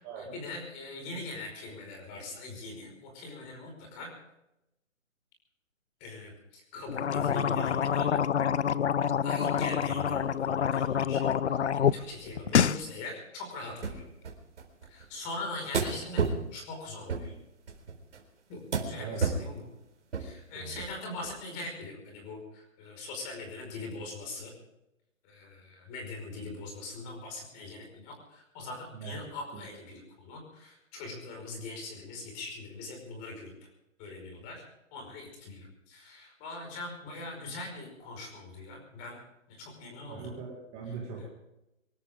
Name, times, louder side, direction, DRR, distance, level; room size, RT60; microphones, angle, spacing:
voice 1, 0.2-4.1 6.0-8.1 9.2-14.0 14.9-16.2 16.5-17.3 18.5-18.6 18.9-19.7 20.2-24.5 25.2-33.7 34.0-34.6 34.9-39.2 39.5-40.3 40.9-41.0, left 2 dB, 20° left, 2 dB, 5.2 m, -41 dB
sound 1, 6.9-12.0 12.3-12.8, left 8 dB, 55° left, 0.8 m, -27 dB
sound 2, 13.8-14.0 14.2-15.0 15.7-16.4 17.1-17.3 17.7-18.2 18.7-18.9 19.2-19.5 20.1-20.3 20.8-20.9 21.2-21.3, right 5 dB, 60° right, 4.2 m, -30 dB
voice 2, 28.9-29.2 29.5-29.6 40.1-41.3, right 5 dB, 15° right, -2 dB, 2.3 m, -40 dB
25.0 x 13.5 x 3.7 m, 0.88 s
hypercardioid pair, 160°, 40 cm